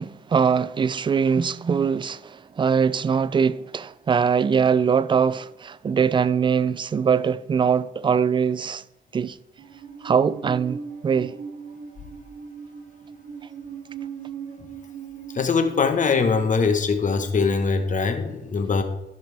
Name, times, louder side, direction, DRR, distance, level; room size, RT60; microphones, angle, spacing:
voice 1, 0.0-8.8 9.1-9.4 10.0-11.3, right 6 dB, 25° right, 0.4 m, -22 dB
Musical instrument, 9.6-16.4, right 6 dB, 65° right, 2.0 m, -39 dB
voice 2, 15.3-18.8, left 5 dB, 40° left, 1.2 m, -22 dB
13.5 x 5.8 x 3.4 m
cardioid pair, 90°, 20 cm